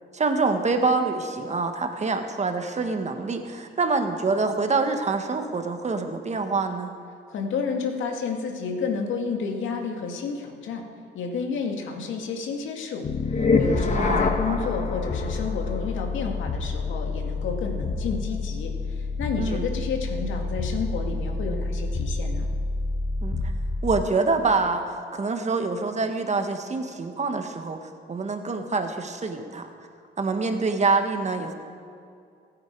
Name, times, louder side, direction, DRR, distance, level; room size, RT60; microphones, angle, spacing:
voice 1, 0.1-6.9 13.9-14.6 19.4-19.6 23.2-23.4 23.8-24.8 25.1-29.7 30.2-31.5, right 3 dB, 35° right, 6 dB, 1.5 m, -26 dB
voice 2, 7.3-10.8 11.1-22.5, left 5 dB, 75° left, 3 dB, 2.2 m, -31 dB
sound 1, 13.0-24.2, left 3 dB, 35° left, 1.4 m, -27 dB
28.5 x 9.7 x 4.7 m, 2.4 s
cardioid pair, 90°, 20 cm